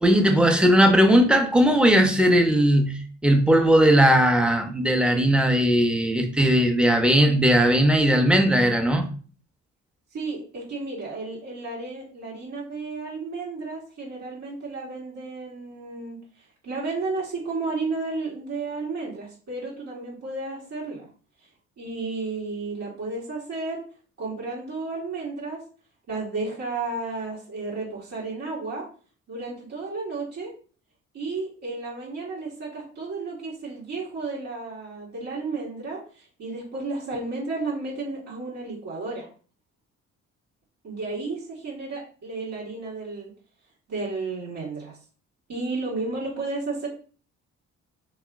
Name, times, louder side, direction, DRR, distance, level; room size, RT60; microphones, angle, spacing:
voice 1, 0.0-9.0, equal, 5° right, 3 dB, 0.7 m, -18 dB
voice 2, 10.1-16.2 16.6-21.0 21.8-23.8 24.2-25.6 26.1-28.8 29.3-30.5 31.1-39.3 40.8-43.3 43.9-45.0 45.5-46.9, right 3 dB, 60° right, -6 dB, 1.6 m, -32 dB
3.1 x 2.8 x 3.5 m, 0.40 s
cardioid pair, 90°, 30 cm